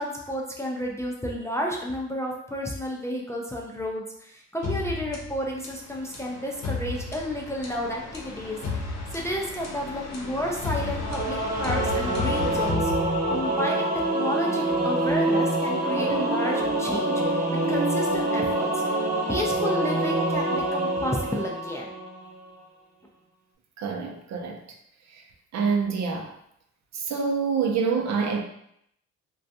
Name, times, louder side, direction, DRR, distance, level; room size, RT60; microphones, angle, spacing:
voice 1, 0.0-8.6 9.1-12.9 13.3-17.4 17.7-18.8 19.3-21.9, equal, 10° left, -1 dB, 0.3 m, -31 dB
sound 1, 4.6-13.6, left 3 dB, 60° left, 0.7 m, -33 dB
Singing / Musical instrument, 11.0-22.2, right 1 dB, 30° right, 0.8 m, -26 dB
voice 2, 23.8-24.6 25.5-26.3 26.9-28.4, right 5 dB, 65° right, 2 dB, 0.6 m, -26 dB
2.4 x 2.2 x 2.6 m, 0.73 s
cardioid pair, 90°, 30 cm